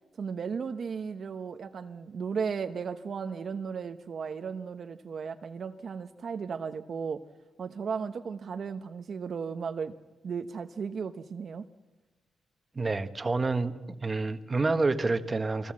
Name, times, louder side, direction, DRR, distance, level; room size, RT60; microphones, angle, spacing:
voice 1, 0.2-7.2 7.6-9.9 10.2-11.6, right 6 dB, 50° right, 0.9 m, -35 dB
voice 2, 12.7-15.7, right 3 dB, 25° right, 1.3 m, -28 dB
29.0 x 21.5 x 7.5 m
cardioid pair, 130°, 0 cm